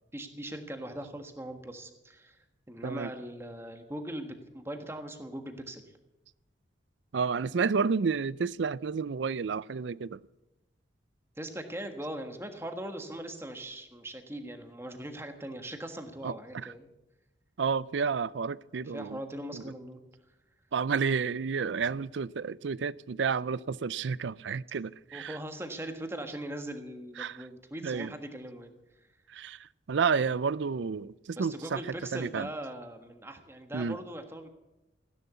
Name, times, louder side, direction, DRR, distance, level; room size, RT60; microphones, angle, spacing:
voice 1, 0.1-6.0 11.4-16.9 18.8-20.0 25.1-28.7 29.0-29.1 31.4-34.5, right 1 dB, 15° right, 1.5 m, -40 dB
voice 2, 2.8-3.1 7.1-10.2 16.2-16.7 17.6-19.2 19.5-19.7 20.7-25.4 27.2-27.4 27.8-28.1 29.3-32.5 33.7-34.0, right 5 dB, 80° right, 0.5 m, -31 dB
16.0 x 11.0 x 8.3 m
head